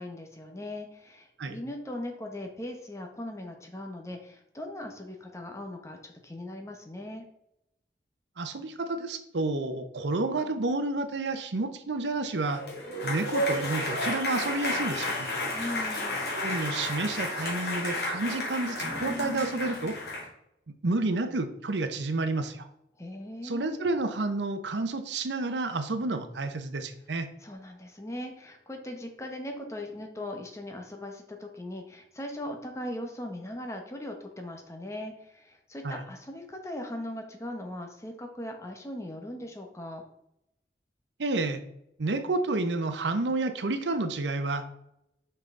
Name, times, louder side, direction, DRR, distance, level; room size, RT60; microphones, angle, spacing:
voice 1, 0.0-7.2 15.5-16.2 23.0-23.9 27.4-40.0, left 1 dB, 15° left, 3 dB, 0.9 m, -39 dB
voice 2, 8.4-12.6 13.0-15.3 16.3-20.0 20.8-22.7 23.4-27.3 35.8-36.0 41.2-41.6 42.0-44.7, right 2 dB, 90° right, 9 dB, 0.7 m, -30 dB
sound 1, 12.4-20.3, left 1 dB, 65° left, 2.3 m, -32 dB
5.5 x 5.4 x 3.7 m, 0.81 s
head